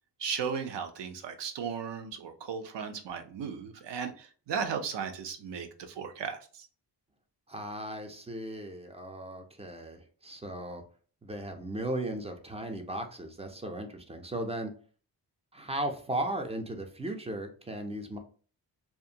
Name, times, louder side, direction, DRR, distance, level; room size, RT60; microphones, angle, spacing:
voice 1, 0.2-6.7, right 6 dB, 75° right, 6 dB, 0.5 m, -36 dB
voice 2, 7.5-10.8 11.2-14.7 15.5-18.2, right 1 dB, 15° right, 5 dB, 0.3 m, -36 dB
2.5 x 2.4 x 2.7 m, 0.41 s
wide cardioid pair, 130°, 43 cm